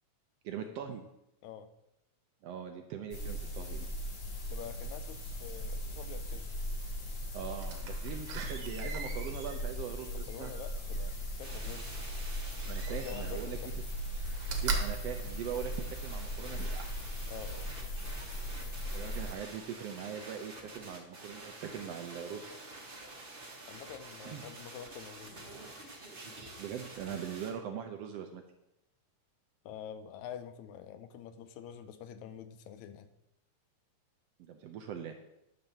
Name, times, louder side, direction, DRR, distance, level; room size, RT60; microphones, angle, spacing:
voice 1, 0.4-1.1 2.4-3.9 7.3-10.5 12.6-13.6 14.6-16.9 18.9-22.5 24.2-24.4 26.6-28.4 34.4-35.2, right 8 dB, 75° right, 5 dB, 1.5 m, -41 dB
sound 1, 3.1-19.3, equal, 45° left, 2.0 m, -38 dB
voice 2, 4.5-6.5 10.1-12.0 12.9-13.7 17.3-17.7 23.7-25.6 29.7-33.1, left 8 dB, 80° left, 11 dB, 2.0 m, -47 dB
Slam, 7.6-11.5 12.6-13.5 13.9-16.2 16.7-16.8, right 4 dB, 60° right, 1.9 m, -39 dB
sound 2, 11.4-27.5, right 2 dB, 30° right, 0.9 m, -49 dB
10.5 x 4.1 x 6.7 m, 0.85 s
omnidirectional pair, 3.3 m